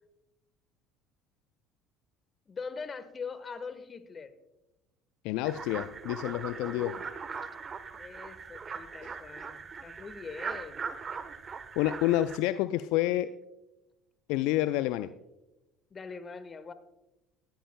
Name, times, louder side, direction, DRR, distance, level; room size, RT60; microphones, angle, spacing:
voice 1, 2.5-4.3 6.5-7.0 7.4-7.5 7.9-10.9 15.9-16.7, left 5 dB, 30° left, 12 dB, 1.3 m, -42 dB
voice 2, 5.2-7.0 9.0-9.1 11.8-13.3 14.3-15.1, left 14 dB, 65° left, 13 dB, 0.4 m, -28 dB
sound 1, 5.4-12.4, right 5 dB, 35° right, 1.0 m, -40 dB
18.5 x 14.0 x 2.2 m, 0.95 s
hypercardioid pair, 65°, 0 cm